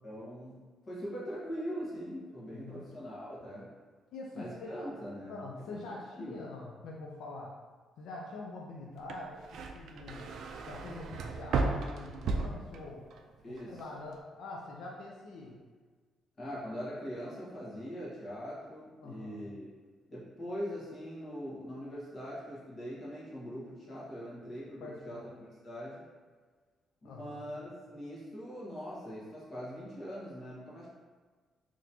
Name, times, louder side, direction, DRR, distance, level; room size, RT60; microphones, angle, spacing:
voice 1, 0.0-3.7 4.3-5.4 5.7-5.8 6.2-6.3 13.4-13.8 16.4-19.7 20.1-26.0 27.0-30.9, equal, 35° left, -7 dB, 1.4 m, -42 dB
voice 2, 4.1-4.8 5.3-7.5 8.0-10.3 10.6-13.1 13.5-15.6 19.0-19.4 24.8-25.4 27.0-27.5, left 2 dB, 85° left, -2 dB, 0.4 m, -45 dB
sound 1, 9.0-13.2 13.6-14.1, right 4 dB, 70° right, 0.3 m, -35 dB
4.0 x 3.0 x 2.8 m, 1.5 s
cardioid pair, 125°, 0 cm